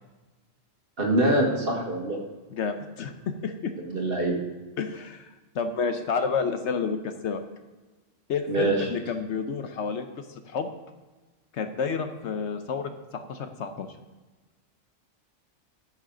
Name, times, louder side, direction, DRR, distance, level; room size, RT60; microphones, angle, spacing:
voice 1, 1.0-2.2 3.9-4.4 8.5-8.8, right 1 dB, 50° right, -1 dB, 1.8 m, -24 dB
voice 2, 2.5-3.1 3.4-3.7 4.8-7.4 8.3-10.7 11.5-13.9, left 5 dB, 75° left, 8 dB, 1.0 m, -30 dB
13.5 x 6.5 x 3.8 m, 1.2 s
omnidirectional pair, 1.2 m